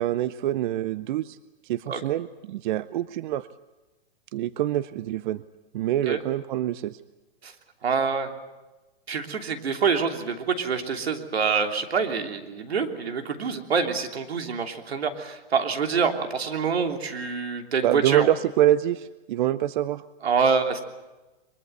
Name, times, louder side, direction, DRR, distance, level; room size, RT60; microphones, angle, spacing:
voice 1, 0.0-1.4 1.6-3.5 4.3-5.4 5.7-7.0 17.8-20.0, right 12 dB, 50° right, 16 dB, 0.7 m, -25 dB
voice 2, 7.8-8.3 9.1-18.3 20.2-20.8, right 5 dB, 85° right, 5 dB, 3.2 m, -26 dB
23.0 x 22.5 x 7.9 m, 1.1 s
hypercardioid pair, 135°, 31 cm